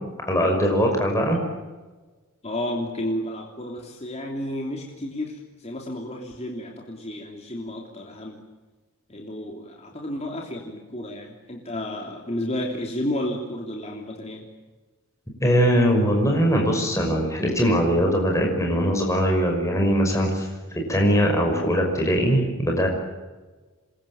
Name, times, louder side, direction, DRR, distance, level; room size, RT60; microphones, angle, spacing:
voice 1, 0.2-1.4 15.4-22.9, equal, 15° left, 1 dB, 5.8 m, -21 dB
voice 2, 2.4-8.4 9.1-14.5, left 1 dB, 30° left, 1 dB, 3.1 m, -32 dB
27.5 x 22.5 x 8.9 m, 1.3 s
head